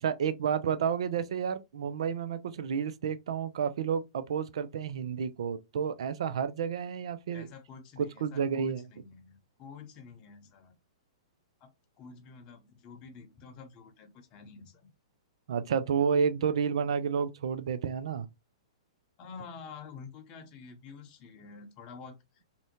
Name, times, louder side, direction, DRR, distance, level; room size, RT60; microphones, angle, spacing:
voice 1, 0.0-7.5 8.0-8.8 15.5-18.3, right 7 dB, 70° right, 0.3 m, -30 dB
voice 2, 7.3-10.7 11.6-11.7 12.0-14.8 19.2-22.6, left 5 dB, 35° left, 0.7 m, -49 dB
2.6 x 2.1 x 2.8 m
hypercardioid pair, 125°, 3 cm